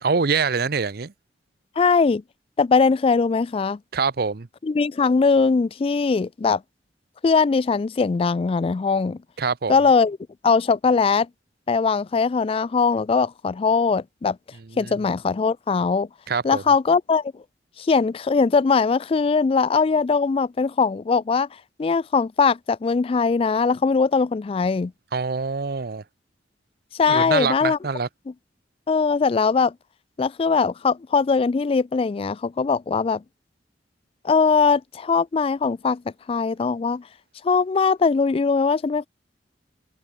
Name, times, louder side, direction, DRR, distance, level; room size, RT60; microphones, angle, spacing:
voice 1, 0.0-1.1 3.9-4.5 9.4-9.8 14.6-14.9 16.3-16.6 25.1-26.0 27.1-28.1, right 5 dB, 60° right, 0.7 m, -25 dB
voice 2, 1.8-2.2 2.6-3.8 4.6-6.6 7.2-9.2 9.7-10.2 10.4-11.3 11.7-14.4 14.8-16.1 16.4-17.3 17.8-21.5 21.8-24.9 27.0-27.8 28.9-29.7 30.2-33.2 34.2-36.0 36.3-37.0 37.4-39.1, left 5 dB, 30° left, 0.3 m, -20 dB
head